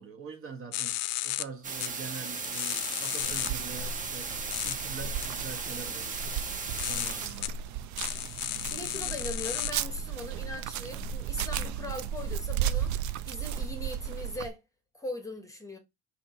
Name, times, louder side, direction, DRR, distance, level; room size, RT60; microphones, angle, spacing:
voice 1, 0.0-6.4 6.8-7.6, right 5 dB, 40° right, 1.1 m, -44 dB
sound 1, 0.7-1.4 1.8-1.9 2.4-3.5 4.5-4.7 5.2-5.3 6.4-7.5 8.0-9.7, left 17 dB, 75° left, 0.5 m, -33 dB
sound 2, 1.6-7.3, right 4 dB, 25° right, 0.7 m, -36 dB
sound 3, 3.2-14.5, right 8 dB, 65° right, 0.5 m, -35 dB
voice 2, 8.7-14.6 14.9-15.8, left 1 dB, 10° left, 0.9 m, -40 dB
4.3 x 2.9 x 4.2 m
cardioid pair, 140°, 31 cm